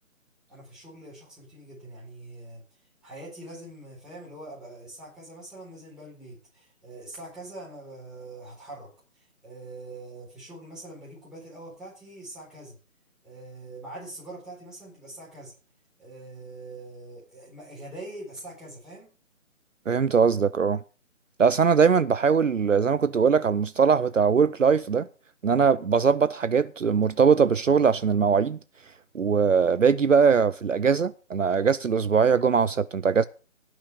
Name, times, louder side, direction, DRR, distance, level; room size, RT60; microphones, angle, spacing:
voice 1, 0.5-2.6 3.0-12.8 13.2-15.5 16.0-19.1, right 2 dB, ahead, 4.1 m, -43 dB
voice 2, 19.9-20.8 21.4-25.1 25.4-28.6 29.1-33.2, right 6 dB, 65° right, 0.7 m, -21 dB
17.0 x 6.2 x 6.7 m
figure-of-eight pair, 155°, 40 cm